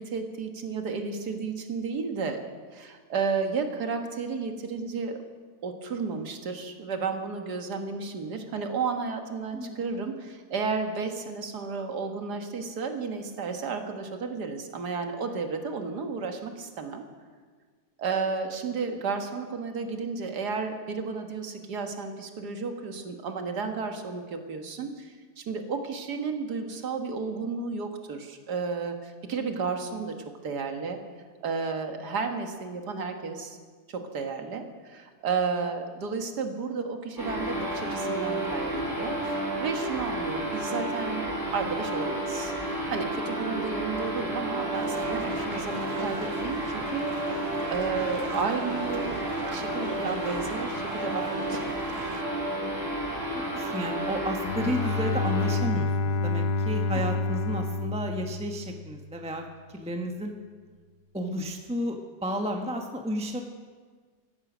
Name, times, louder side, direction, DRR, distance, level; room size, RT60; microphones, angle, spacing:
voice 1, 0.0-2.4 2.7-5.2 5.6-17.0 18.0-30.2 30.4-31.0 31.4-33.6 33.9-42.5 42.9-51.8 56.9-57.0, right 5 dB, 80° right, 5 dB, 2.0 m, -32 dB
sound 1, 37.2-55.5, right 1 dB, 10° left, 5.6 m, -31 dB
sound 2, 44.7-52.2, right 4 dB, 45° right, 0.4 m, -41 dB
voice 2, 53.5-59.4 59.7-60.3 61.1-63.4, equal, 5° right, 3 dB, 0.9 m, -32 dB
Bowed string instrument, 54.4-59.1, left 3 dB, 80° left, 1.3 m, -28 dB
15.0 x 15.0 x 6.1 m, 1.5 s
omnidirectional pair, 1.7 m